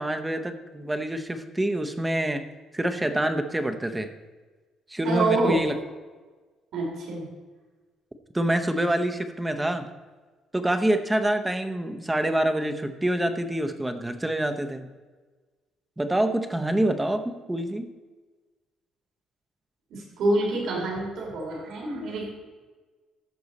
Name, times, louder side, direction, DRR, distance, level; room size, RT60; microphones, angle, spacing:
voice 1, 0.0-2.4 2.7-4.1 4.9-5.8 8.3-9.9 10.5-14.9 16.0-17.9, right 1 dB, 10° right, 7 dB, 0.8 m, -26 dB
voice 2, 5.0-5.6 6.7-7.3 19.9-22.3, right 2 dB, 65° right, -3 dB, 3.7 m, -26 dB
14.5 x 6.2 x 4.1 m, 1.3 s
cardioid pair, 135°, 0 cm